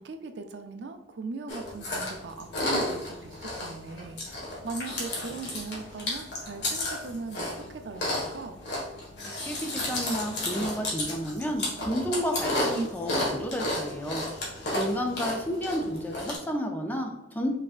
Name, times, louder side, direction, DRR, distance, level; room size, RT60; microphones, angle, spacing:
voice 1, 0.0-8.5, right 4 dB, 65° right, 6 dB, 0.4 m, -39 dB
Chewing mastication, 1.5-16.4, left 1 dB, 60° left, 1.5 m, -33 dB
voice 2, 9.4-17.6, equal, 10° left, 3 dB, 0.4 m, -31 dB
5.2 x 3.4 x 2.4 m, 1.0 s
head